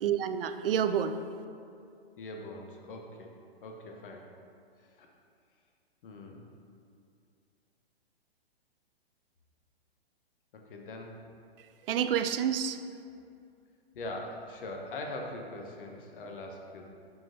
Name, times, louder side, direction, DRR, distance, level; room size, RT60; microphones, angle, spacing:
voice 1, 0.0-1.2 11.6-12.8, right 8 dB, 65° right, 9 dB, 0.5 m, -29 dB
voice 2, 2.2-3.3 3.6-4.3 5.0-5.1 6.0-6.5 10.5-11.2 13.9-16.9, left 2 dB, 60° left, 2 dB, 0.9 m, -42 dB
10.0 x 4.0 x 2.6 m, 2.4 s
hypercardioid pair, 120°, 31 cm